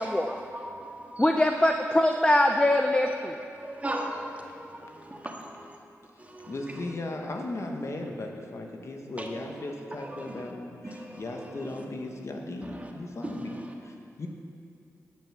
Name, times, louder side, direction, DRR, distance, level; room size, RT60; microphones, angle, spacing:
voice 1, 0.0-0.4 1.2-3.4, left 1 dB, 15° left, 4 dB, 0.7 m, -23 dB
voice 2, 0.5-1.1 3.6-5.5 6.3-6.5 9.2-9.3 10.9-11.1 13.2-13.3, right 1 dB, 25° right, 1 dB, 1.8 m, -37 dB
voice 3, 6.5-14.3, left 2 dB, 55° left, 2 dB, 1.4 m, -37 dB
12.0 x 5.9 x 7.7 m, 2.4 s
cardioid pair, 45°, 6 cm